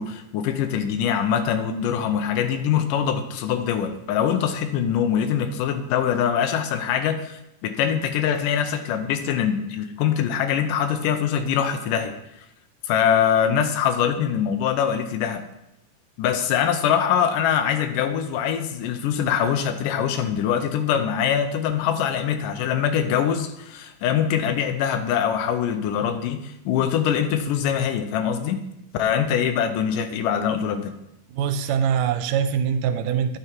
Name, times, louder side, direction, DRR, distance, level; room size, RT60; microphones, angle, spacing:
voice 1, 0.0-12.1 12.9-15.4 16.2-28.6 28.9-30.9, left 8 dB, 85° left, 8 dB, 2.3 m, -23 dB
voice 2, 31.3-33.4, right 7 dB, 80° right, 10 dB, 2.3 m, -23 dB
9.9 x 7.1 x 4.6 m, 0.86 s
omnidirectional pair, 3.8 m